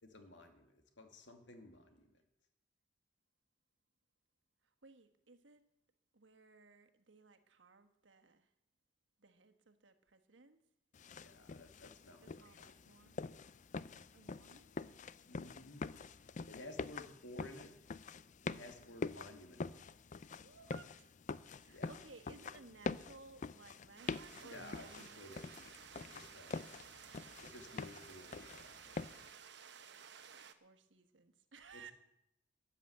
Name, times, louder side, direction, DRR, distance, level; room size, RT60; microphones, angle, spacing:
voice 1, 0.0-2.1 11.1-12.6 13.3-13.4 15.3-15.9 16.5-17.7 18.4-19.9 21.7-21.9 24.4-26.6 27.4-28.8 31.7-31.9, left 1 dB, 80° left, 5 dB, 2.3 m, -55 dB
voice 2, 4.8-5.6 6.1-8.5 9.2-10.6 12.2-13.2 14.1-15.0 20.4-21.1 21.5-25.3 30.6-31.9, right 4 dB, 90° right, 7 dB, 1.4 m, -59 dB
sound 1, 10.9-29.3, left 4 dB, 40° left, 0.5 m, -46 dB
sound 2, 24.0-30.5, right 7 dB, 65° right, 1.0 m, -55 dB
13.5 x 10.0 x 7.9 m, 0.81 s
head